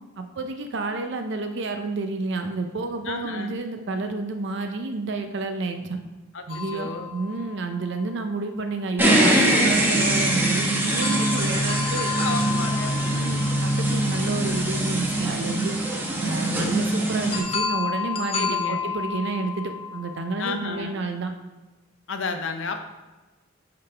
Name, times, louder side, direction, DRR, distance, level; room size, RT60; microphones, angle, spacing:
voice 1, 0.2-6.0 6.5-12.1 13.0-15.8 16.2-21.3, right 3 dB, 65° right, 6 dB, 0.6 m, -30 dB
voice 2, 3.1-3.6 6.3-7.1 10.7-10.8 12.1-13.0 18.3-18.8 20.4-21.0 22.1-22.8, left 4 dB, 70° left, 6 dB, 0.7 m, -32 dB
sound 1, 6.5-8.2 10.8-14.7 17.3-20.8, left 6 dB, 30° left, 0.6 m, -32 dB
sound 2, 9.0-17.4, right 1 dB, 10° right, 0.9 m, -23 dB
9.0 x 3.9 x 3.3 m, 1.2 s
head